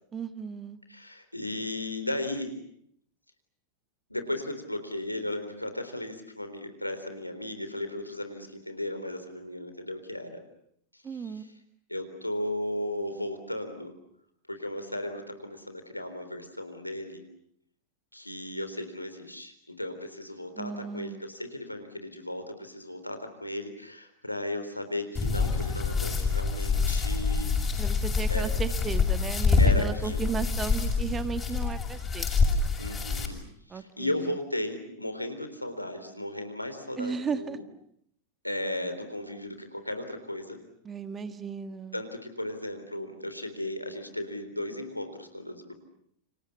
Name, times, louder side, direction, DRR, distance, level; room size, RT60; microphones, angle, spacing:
voice 1, 0.1-0.8 11.0-11.4 20.6-21.2 27.8-32.3 33.7-34.3 37.0-37.6 40.8-42.0, right 6 dB, 20° right, 12 dB, 1.7 m, -35 dB
voice 2, 0.9-2.6 4.1-10.4 10.9-11.5 11.9-13.9 14.5-17.2 18.1-27.8 28.3-28.5 29.6-30.3 32.8-33.4 33.7-37.6 38.4-40.6 41.9-45.7, left 1 dB, 85° left, 8 dB, 3.9 m, -35 dB
sound 1, 25.1-33.2, left 4 dB, 20° left, 6.7 m, -26 dB
29.5 x 27.0 x 7.2 m, 0.70 s
figure-of-eight pair, 90°, 0 cm